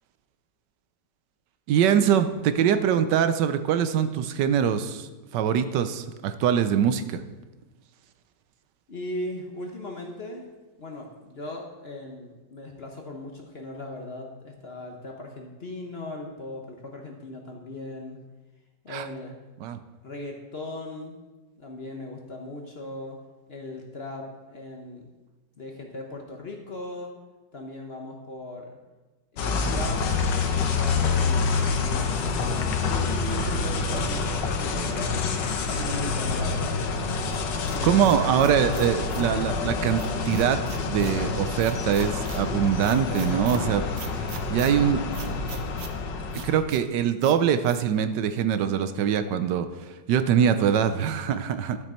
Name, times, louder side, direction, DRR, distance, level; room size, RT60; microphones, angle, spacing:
voice 1, 1.7-7.2 18.9-19.1 19.6-19.8 37.8-40.6 40.9-45.0 46.3-49.7 50.1-51.8, right 8 dB, 75° right, 10 dB, 1.2 m, -23 dB
voice 2, 8.9-10.5 10.8-18.2 18.8-19.4 20.0-21.2 21.6-23.2 23.5-25.1 25.6-27.2 27.5-28.7 29.3-30.1 30.5-32.1 32.4-36.9 37.7-38.4, left 2 dB, 40° left, 1 dB, 1.1 m, -38 dB
sound 1, 29.4-46.6, left 4 dB, 85° left, 1.5 m, -27 dB
sound 2, 37.3-39.3 40.0-41.2 41.6-42.4 42.8-43.6 44.0-44.7 45.1-45.9 46.3-46.8 47.2-47.4 47.6-47.8, right 7 dB, 60° right, 0.8 m, -42 dB
12.0 x 6.2 x 4.3 m, 1.2 s
omnidirectional pair, 1.9 m